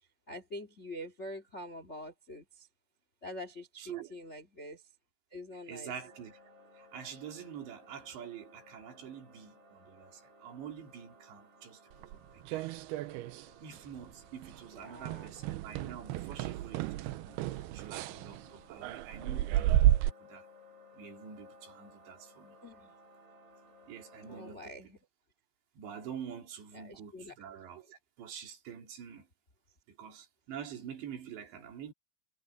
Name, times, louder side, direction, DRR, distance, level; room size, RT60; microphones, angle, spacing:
voice 1, 0.3-2.7 3.2-4.9 5.3-5.9 14.7-15.3 22.6-22.9 24.2-25.0 26.7-27.3, left 1 dB, 50° left, 0.7 m, -45 dB
voice 2, 3.8-4.1 5.5-6.4 6.7-12.2 12.5-12.7 13.6-20.5 20.9-22.6 23.9-24.7 25.8-29.3 29.9-31.9, right 8 dB, 65° right, 5.1 m, -46 dB
sound 1, 5.9-24.6, left 1 dB, 50° right, 6.7 m, -59 dB
Jenks Staircase Footsteps, 12.0-13.5 13.7-14.1 14.4-14.6 15.0-20.1, right 13 dB, 90° right, 2.2 m, -31 dB
omnidirectional pair, 5.5 m